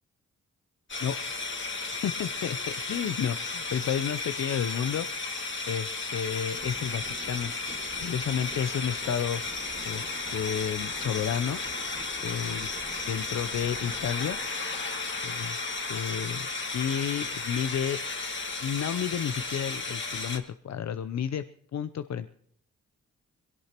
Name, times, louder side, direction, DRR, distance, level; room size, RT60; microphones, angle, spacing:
sound 1, 0.9-20.4, left 3 dB, 40° left, 2.0 m, -34 dB
voice 1, 1.9-5.1 5.7-7.5 8.0-9.4 9.8-11.6 12.2-12.7 13.1-14.4 15.2-16.5 16.7-18.0 18.6-21.4 21.7-22.3, left 8 dB, 60° left, 12 dB, 0.6 m, -31 dB
sound 2, 6.5-14.4, right 3 dB, 30° right, 1.7 m, -49 dB
22.0 x 17.0 x 3.0 m, 0.65 s
cardioid pair, 55°, 31 cm